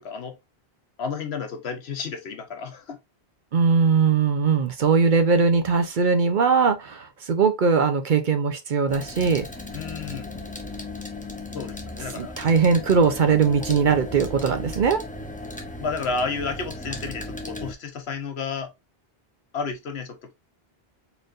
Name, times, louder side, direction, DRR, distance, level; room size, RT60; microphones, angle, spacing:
voice 1, 0.0-0.4 1.0-3.0 9.7-10.3 11.5-12.3 15.8-18.7 19.5-20.3, left 4 dB, 80° left, 1.2 m, -31 dB
voice 2, 3.5-9.5 12.2-15.0, right 5 dB, 55° right, 0.7 m, -20 dB
sound 1, 8.9-17.7, left 2 dB, 10° left, 0.6 m, -36 dB
4.3 x 3.3 x 2.5 m
omnidirectional pair, 1.0 m